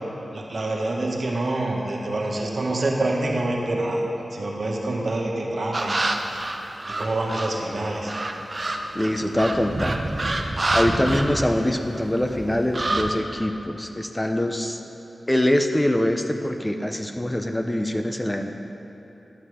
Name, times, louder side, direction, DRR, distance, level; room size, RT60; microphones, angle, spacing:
voice 1, 0.3-6.4 6.9-8.1, right 2 dB, 65° right, -2 dB, 1.5 m, -26 dB
sound 1, 5.7-7.6 8.1-11.9 12.2-13.1, right 2 dB, 40° right, 0.8 m, -27 dB
voice 2, 8.9-10.0 10.7-14.8 15.3-18.5, left 1 dB, 15° left, 5 dB, 0.6 m, -24 dB
12.0 x 7.4 x 5.0 m, 3.0 s
cardioid pair, 50°, 0 cm